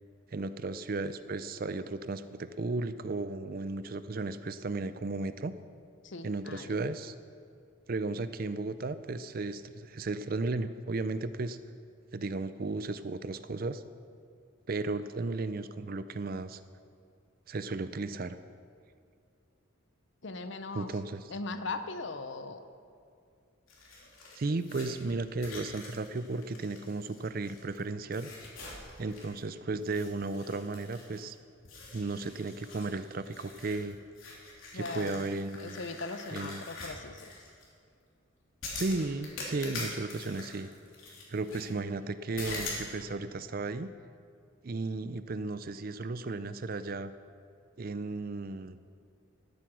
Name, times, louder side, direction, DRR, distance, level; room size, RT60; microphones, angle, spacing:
voice 1, 0.3-5.5 6.2-7.2 7.9-11.6 12.1-13.8 14.7-16.6 17.5-18.4 20.7-21.2 24.4-28.3 29.0-31.4 31.9-34.0 34.7-35.8 36.3-36.6 38.8-40.7 41.3-43.9 44.6-47.1 47.8-48.8, right 3 dB, 45° right, 12 dB, 0.5 m, -34 dB
voice 2, 6.0-6.8 20.2-20.9 21.3-22.6 34.7-35.3 35.6-37.3, left 3 dB, 55° left, 9 dB, 0.7 m, -39 dB
sound 1, 23.7-27.8 28.1-29.5 29.8-31.3 31.6-37.6 38.6-41.7 42.4-42.9, left 3 dB, 75° left, 3.1 m, -44 dB
12.5 x 9.2 x 6.2 m, 2.4 s
head